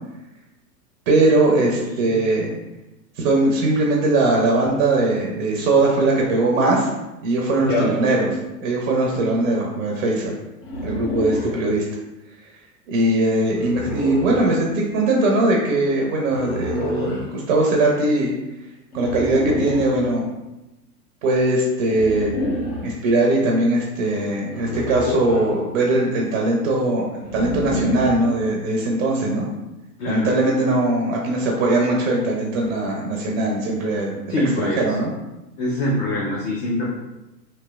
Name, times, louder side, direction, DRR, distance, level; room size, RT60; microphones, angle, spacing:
voice 1, 1.1-2.5 3.2-6.9 7.2-8.3 8.6-10.3 10.8-11.8 12.9-18.3 18.9-20.3 21.2-22.3 22.8-27.0 27.3-29.5 30.1-35.1, right 2 dB, 35° right, -1 dB, 0.4 m, -20 dB
voice 2, 1.8-2.2 7.7-7.9 30.0-30.3 34.3-35.0 35.6-36.9, left 1 dB, 35° left, -3 dB, 0.4 m, -24 dB
sound 1, 10.6-11.6 13.5-14.5 16.3-17.3 18.9-19.9 21.9-22.9 24.5-25.6 27.2-28.2, left 1 dB, 55° left, 0.9 m, -28 dB
3.0 x 2.8 x 2.3 m, 0.99 s
hypercardioid pair, 115°, 49 cm